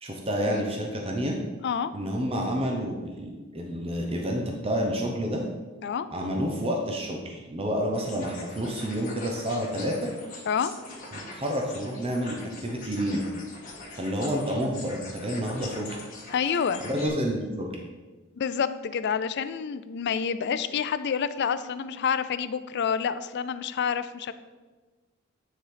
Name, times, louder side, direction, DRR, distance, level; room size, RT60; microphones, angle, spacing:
voice 1, 0.0-1.4 1.9-5.4 6.1-10.0 11.1-13.2 14.0-15.9 16.8-17.8, equal, 30° right, 1 dB, 0.9 m, -29 dB
sound 1, 7.9-17.1, left 2 dB, 40° left, 2.1 m, -43 dB
voice 2, 16.3-16.8 18.4-24.3, left 7 dB, 55° left, 12 dB, 0.4 m, -28 dB
9.5 x 4.1 x 5.0 m, 1.3 s
head